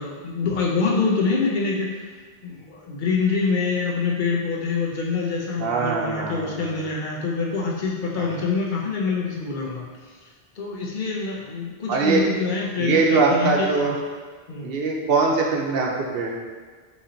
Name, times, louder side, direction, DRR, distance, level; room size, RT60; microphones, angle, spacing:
voice 1, 0.0-1.9 2.4-9.9 10.6-13.9 14.5-14.7, left 4 dB, 55° left, -2 dB, 0.9 m, -25 dB
voice 2, 5.6-6.8 8.2-8.3 11.9-12.2 12.8-13.9 14.6-16.3, right 4 dB, 70° right, 0 dB, 0.9 m, -22 dB
4.4 x 3.1 x 3.8 m, 1.5 s
omnidirectional pair, 1.0 m